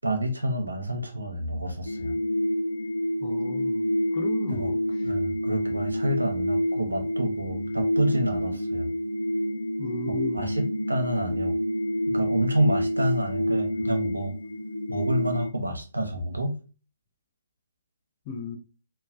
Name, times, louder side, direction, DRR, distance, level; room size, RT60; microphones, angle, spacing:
voice 1, 0.0-2.2 4.5-4.7 5.0-8.9 10.1-10.6 10.9-11.5 12.1-14.3 14.9-16.6, right 1 dB, 75° right, 0.6 m, -28 dB
sound 1, 1.9-15.5, equal, 75° left, 0.3 m, -28 dB
voice 2, 3.2-3.8 4.1-4.8 9.8-10.5 18.3-18.6, left 3 dB, 30° left, 0.5 m, -35 dB
3.1 x 2.2 x 2.4 m
figure-of-eight pair, 130°, 0 cm